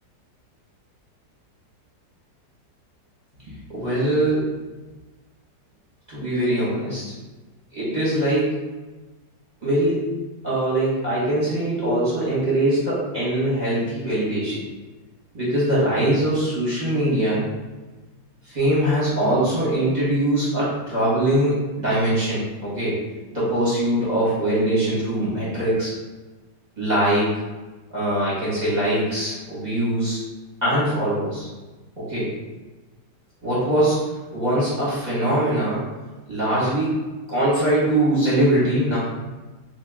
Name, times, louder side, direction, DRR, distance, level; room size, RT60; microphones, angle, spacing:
voice 1, 3.5-4.5 6.1-7.1 7.7-8.6 9.6-10.1 10.4-14.6 15.3-17.5 18.4-23.0 23.3-25.9 26.8-27.3 27.9-30.2 30.6-31.5 32.0-32.3 33.4-35.8 36.3-37.0 37.3-39.0, right 1 dB, 35° right, -9 dB, 0.8 m, -22 dB
2.8 x 2.4 x 3.4 m, 1.2 s
omnidirectional pair, 2.0 m